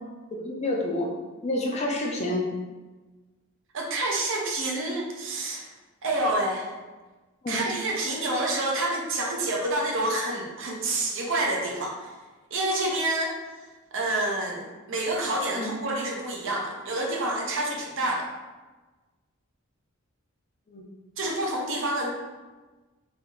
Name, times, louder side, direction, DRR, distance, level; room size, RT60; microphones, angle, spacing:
voice 1, 0.3-1.1 1.4-2.5 7.4-7.6 15.5-15.7 20.7-20.8, left 1 dB, 30° left, -1 dB, 0.6 m, -28 dB
voice 2, 3.7-5.7 6.0-6.7 7.5-12.1 12.5-13.3 13.9-18.3 21.2-22.1, right 2 dB, 60° right, -1 dB, 0.7 m, -28 dB
3.4 x 2.7 x 3.7 m, 1.2 s
head